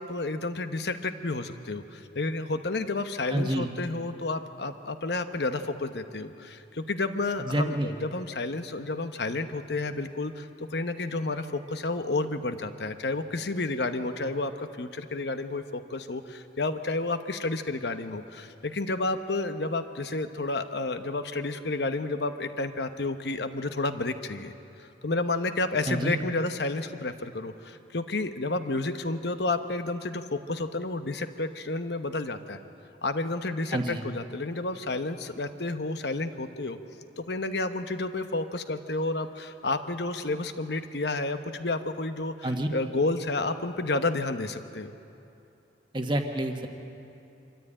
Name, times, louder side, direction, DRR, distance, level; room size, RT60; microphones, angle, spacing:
voice 1, 0.0-24.5 25.0-32.6 33.0-36.8 37.2-44.9, left 2 dB, 65° left, 9 dB, 1.0 m, -31 dB
voice 2, 3.3-3.7 7.4-7.9 25.9-26.2 33.7-34.0 42.4-42.7 45.9-46.7, right 1 dB, 25° right, 3 dB, 1.4 m, -28 dB
25.0 x 14.0 x 8.9 m, 2.8 s
head